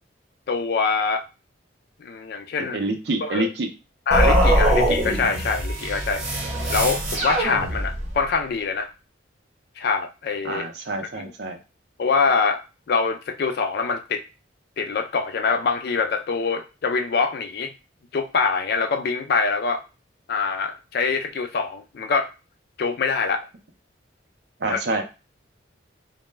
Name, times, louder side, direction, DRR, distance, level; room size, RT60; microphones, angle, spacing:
voice 1, 0.5-1.2 2.0-2.8 3.2-3.5 4.1-6.2 6.7-8.9 9.8-10.6 11.1-11.3 12.0-12.6 12.9-14.2 14.8-17.7 18.1-19.8 20.3-22.3 22.8-23.5 24.7-24.8, left 5 dB, 55° left, 6 dB, 0.3 m, -24 dB
voice 2, 2.7-3.7 10.4-11.6 24.6-25.0, right 2 dB, 60° right, 5 dB, 0.4 m, -27 dB
sound 1, 4.1-8.2, right 1 dB, 35° right, 0.8 m, -22 dB
2.1 x 2.0 x 3.2 m, 0.30 s
head